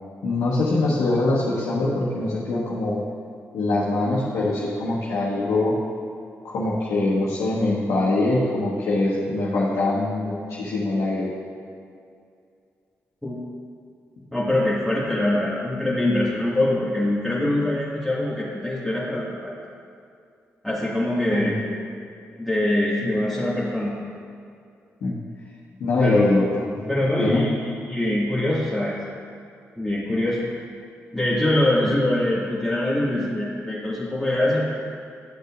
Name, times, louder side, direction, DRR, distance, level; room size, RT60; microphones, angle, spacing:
voice 1, 0.2-3.0 3.5-5.7 6.4-11.3 21.3-21.6 25.0-25.2 25.8-26.4 26.7-26.9 27.2-27.5, left 2 dB, 75° left, -8 dB, 1.4 m, -23 dB
voice 2, 14.3-19.5 20.6-21.6 22.4-23.9 26.0-26.4 26.9-29.0 29.8-30.4 31.1-34.7, left 1 dB, ahead, -9 dB, 2.1 m, -23 dB
12.0 x 6.5 x 2.6 m, 2.4 s
hypercardioid pair, 45°, 6 cm